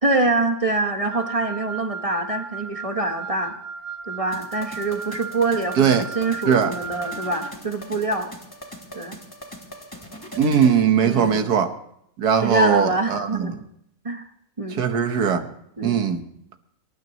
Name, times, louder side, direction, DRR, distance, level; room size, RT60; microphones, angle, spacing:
voice 1, 0.0-3.6 4.1-8.3 8.9-9.2 11.0-11.4 12.4-13.6 14.0-14.3 14.6-14.8 15.8-16.0, right 2 dB, 25° right, 6 dB, 0.9 m, -25 dB
Wind instrument woodwind instrument, 1.1-7.6, right 5 dB, 55° right, 1.1 m, -35 dB
sound 1, 4.3-10.8, equal, 15° left, 2.7 m, -40 dB
voice 2, 10.4-11.8 12.2-13.5 14.8-15.5 15.8-16.2, right 7 dB, 80° right, 7 dB, 1.7 m, -19 dB
25.0 x 12.0 x 3.1 m, 0.74 s
omnidirectional pair, 1.7 m